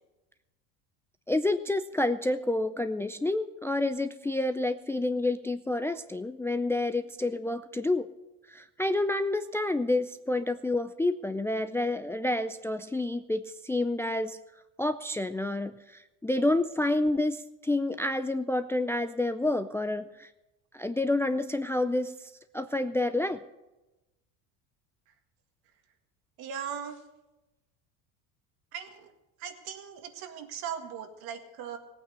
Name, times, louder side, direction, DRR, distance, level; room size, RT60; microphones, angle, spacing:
voice 1, 1.3-8.1 8.5-14.4 14.8-20.3 20.7-23.4, left 2 dB, 5° left, 10 dB, 0.4 m, -29 dB
voice 2, 26.4-27.0 28.7-29.1 29.4-31.8, right 8 dB, 65° right, 6 dB, 2.0 m, -38 dB
16.5 x 8.8 x 6.9 m, 1.0 s
supercardioid pair, 95°, 39 cm